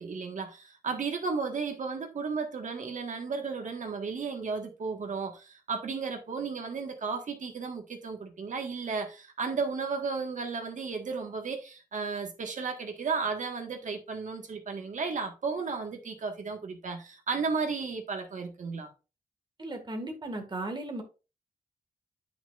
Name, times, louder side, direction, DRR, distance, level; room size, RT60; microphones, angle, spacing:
voice 1, 0.0-18.9, right 4 dB, 60° right, 1.7 m, -34 dB
voice 2, 19.6-21.0, right 2 dB, 30° right, 2.0 m, -36 dB
10.0 x 6.1 x 2.5 m
wide cardioid pair, 140°, 15 cm